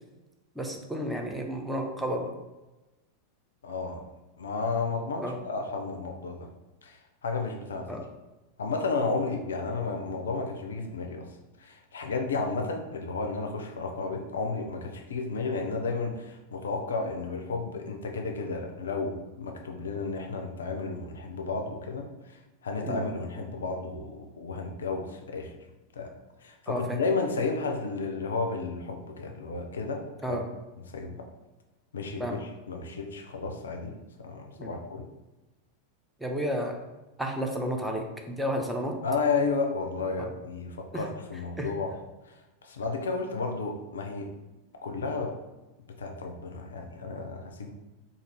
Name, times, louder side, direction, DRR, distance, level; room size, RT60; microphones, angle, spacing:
voice 1, 0.6-2.3 5.2-5.4 7.9-8.0 22.8-23.0 26.7-27.0 30.2-30.5 32.2-32.4 34.6-34.7 36.2-36.8 37.2-39.0 40.2-40.3 40.9-41.0 41.6-41.7, equal, 5° right, 2 dB, 0.4 m, -32 dB
voice 2, 3.6-4.0 4.4-6.5 6.8-8.0 8.6-11.3 11.6-25.5 25.9-26.1 26.4-30.4 30.9-31.3 31.9-35.1 39.0-42.0 42.2-44.3 44.8-45.4 46.0-47.7, left 4 dB, 65° left, 3 dB, 0.3 m, -32 dB
2.4 x 2.4 x 3.2 m, 1.1 s
figure-of-eight pair, 90°, 0 cm